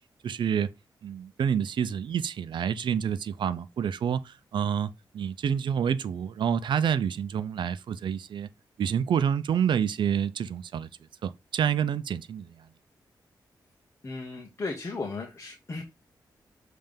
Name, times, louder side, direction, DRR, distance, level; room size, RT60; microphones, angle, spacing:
voice 1, 0.2-0.7 1.0-4.9 5.1-8.5 8.8-10.9 11.2-12.5, right 8 dB, 80° right, 0.6 m, -28 dB
voice 2, 14.0-15.8, left 3 dB, 35° left, 1.3 m, -35 dB
7.3 x 3.4 x 5.2 m
wide cardioid pair, 135°, 8 cm